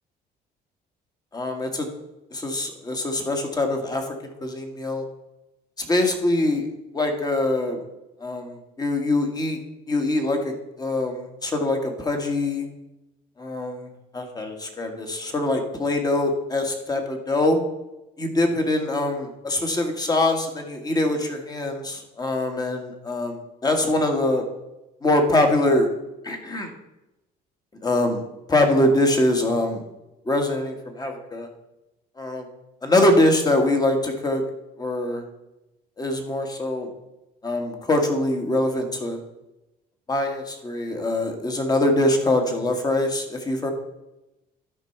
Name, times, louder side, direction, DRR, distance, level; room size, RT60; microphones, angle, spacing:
voice 1, 1.3-1.9 2.3-5.0 5.8-6.7 6.9-7.8 8.2-9.6 9.9-10.4 10.8-12.7 13.4-13.9 14.1-17.6 18.2-24.4 25.0-25.9 26.2-26.7 27.8-28.2 28.5-29.8 30.3-31.5 32.2-32.5 32.8-34.4 34.8-35.2 36.0-36.9 37.4-39.2 40.1-43.7, left 1 dB, 25° left, 4 dB, 1.8 m, -23 dB
12.0 x 5.4 x 4.5 m, 0.96 s
cardioid pair, 110°, 17 cm